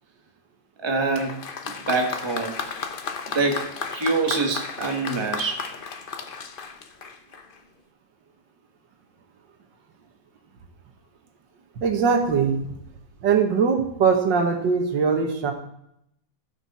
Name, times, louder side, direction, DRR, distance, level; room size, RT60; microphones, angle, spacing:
voice 1, 0.8-1.4 1.9-2.6 3.3-5.7, right 3 dB, 15° right, 2 dB, 1.1 m, -25 dB
Applause, 1.1-7.6, left 5 dB, 60° left, 0.5 m, -34 dB
voice 2, 11.8-12.6 13.2-15.5, right 6 dB, 75° right, 4 dB, 1.9 m, -21 dB
15.5 x 6.1 x 4.2 m, 0.76 s
omnidirectional pair, 2.0 m